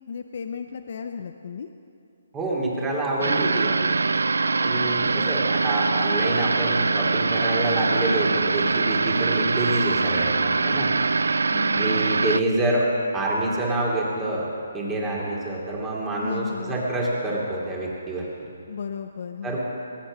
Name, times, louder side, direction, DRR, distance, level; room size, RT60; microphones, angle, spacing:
voice 1, 0.1-1.7 4.8-5.5 11.5-12.2 16.2-16.9 18.7-19.6, left 6 dB, 55° left, 7 dB, 0.7 m, -35 dB
voice 2, 2.3-3.9 4.6-10.9 11.8-12.9 13.1-14.5 14.7-18.2 19.4-19.6, right 1 dB, 15° right, -4 dB, 2.9 m, -27 dB
sound 1, 3.2-12.4, right 4 dB, 85° right, 0.4 m, -23 dB
20.5 x 9.2 x 6.2 m, 2.5 s
hypercardioid pair, 155°, 0 cm